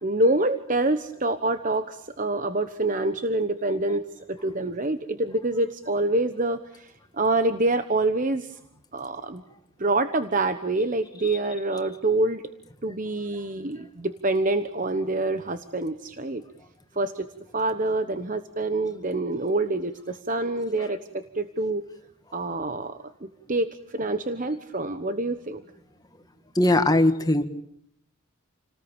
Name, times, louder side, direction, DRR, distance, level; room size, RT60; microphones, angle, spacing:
voice 1, 0.0-8.6 8.9-9.4 9.8-12.4 12.8-16.4 16.9-17.3 17.5-21.8 22.3-25.6, right 2 dB, 40° right, 10 dB, 1.1 m, -26 dB
voice 2, 26.6-27.5, left 1 dB, 20° left, 8 dB, 1.8 m, -20 dB
29.5 x 19.5 x 9.0 m, 0.73 s
head